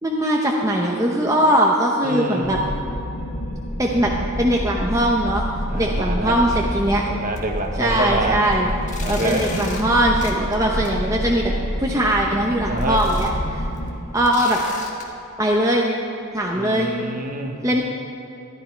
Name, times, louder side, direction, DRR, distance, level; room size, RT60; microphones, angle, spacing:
voice 1, 0.0-2.6 3.8-4.1 4.4-5.4 5.7-7.0 7.8-8.7 9.1-11.5 11.8-13.6 14.1-14.6 15.4-15.9 16.3-16.9 17.6-17.8, right 1 dB, 15° right, -1 dB, 0.8 m, -20 dB
voice 2, 2.0-2.5 5.7-6.3 7.1-8.4 9.0-9.4 12.7-13.0 16.5-17.6, right 2 dB, 35° right, 4 dB, 1.1 m, -26 dB
sound 1, 2.4-14.0, equal, 80° left, 1.5 m, -28 dB
sound 2, 5.6-6.0 6.3-6.4 7.0-7.1 7.4-15.0, left 3 dB, 35° left, 1.3 m, -40 dB
14.0 x 11.0 x 4.5 m, 2.8 s
head